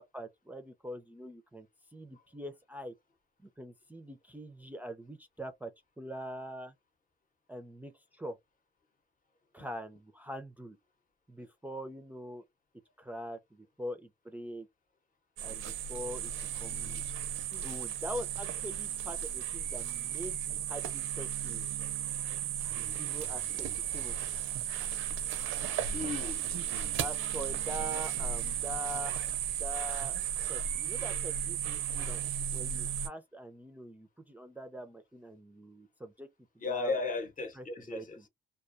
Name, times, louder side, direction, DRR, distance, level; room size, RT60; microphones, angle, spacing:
voice 1, 0.0-1.7 1.9-2.9 3.4-5.7 6.0-6.7 7.5-8.4 9.5-10.8 11.3-12.4 13.0-14.7 15.4-17.0 17.5-21.8 22.9-24.2 27.0-29.1 29.6-30.2 30.4-32.2 32.5-36.3 36.7-37.0 37.5-38.3, equal, 10° right, 0.4 m, -43 dB
sound 1, 15.4-33.1, right 9 dB, 85° right, 0.5 m, -35 dB
voice 2, 25.9-26.4 36.6-38.2, left 3 dB, 45° left, 0.8 m, -35 dB
2.3 x 2.2 x 2.5 m
cardioid pair, 90°, 20 cm